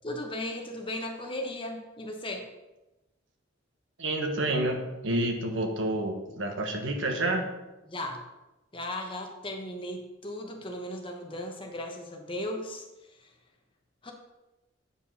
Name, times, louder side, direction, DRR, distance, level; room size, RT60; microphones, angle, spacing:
voice 1, 0.0-2.5 7.9-8.2 8.7-13.3 14.0-14.1, left 1 dB, 25° left, 3 dB, 1.1 m, -36 dB
voice 2, 4.0-7.5, right 1 dB, 70° right, 3 dB, 1.4 m, -29 dB
8.6 x 5.1 x 5.7 m, 1.0 s
head